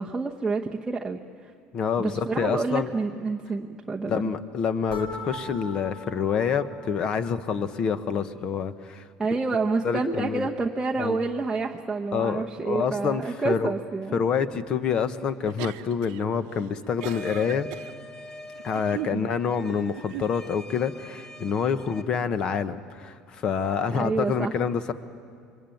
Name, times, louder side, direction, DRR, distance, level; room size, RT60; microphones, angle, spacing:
voice 1, 0.0-1.5 2.0-4.3 9.2-14.2 19.1-19.3 23.9-24.5, right 3 dB, 10° right, -2 dB, 0.9 m, -28 dB
voice 2, 1.7-2.9 4.1-9.1 9.8-10.5 11.0-11.2 12.1-13.7 14.1-17.7 18.6-24.9, left 6 dB, 35° left, 12 dB, 1.1 m, -27 dB
sound 1, 4.9-7.8, left 2 dB, 55° left, 3.8 m, -40 dB
sound 2, 15.4-16.2 16.6-17.9 18.5-19.2 19.9-20.3, right 16 dB, 80° right, 0.8 m, -38 dB
sound 3, 17.0-22.0, left 1 dB, 20° left, 1.3 m, -44 dB
27.5 x 23.5 x 9.2 m, 2.4 s
cardioid pair, 160°, 2 cm